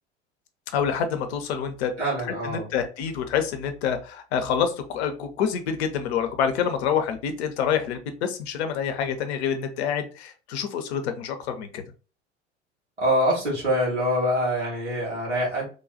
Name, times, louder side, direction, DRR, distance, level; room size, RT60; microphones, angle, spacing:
voice 1, 0.7-1.9 2.4-11.8, left 7 dB, 65° left, 7 dB, 0.8 m, -27 dB
voice 2, 2.0-2.7 13.0-15.7, equal, 90° right, -5 dB, 1.8 m, -25 dB
3.3 x 2.3 x 3.8 m, 0.36 s
figure-of-eight pair, 75°, 35 cm